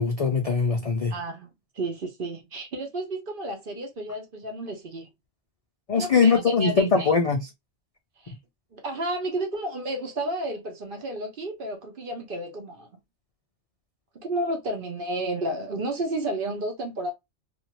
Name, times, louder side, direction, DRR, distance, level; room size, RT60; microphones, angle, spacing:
voice 1, 0.0-1.1 5.9-7.4, left 5 dB, 55° left, 0.4 m, -21 dB
voice 2, 1.1-1.5 1.7-5.1 5.9-7.2 8.2-8.3 8.7-12.9 14.2-17.1, right 1 dB, 50° right, 1.0 m, -32 dB
2.7 x 2.6 x 2.9 m
omnidirectional pair, 1.2 m